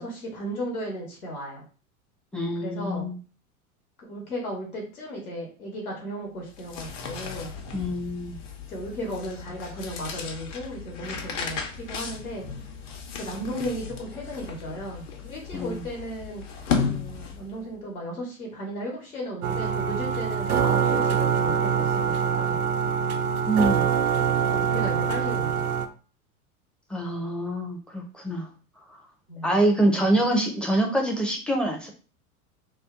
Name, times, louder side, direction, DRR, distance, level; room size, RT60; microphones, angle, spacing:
voice 1, 0.0-1.6 2.6-3.1 4.0-7.5 8.7-12.5 13.1-16.4 16.7-22.6 24.4-25.7 29.3-29.5, equal, 75° left, -1 dB, 1.1 m, -35 dB
voice 2, 2.3-3.2 7.7-8.4 15.5-15.8 23.5-23.9 26.9-28.5 28.9-29.0 29.4-31.9, right 1 dB, ahead, 1 dB, 0.5 m, -25 dB
sound 1, 6.4-17.6, left 6 dB, 55° left, 0.9 m, -35 dB
sound 2, 19.4-25.9, right 7 dB, 85° right, 0.5 m, -24 dB
2.9 x 2.2 x 3.6 m, 0.38 s
figure-of-eight pair, 85°, 44 cm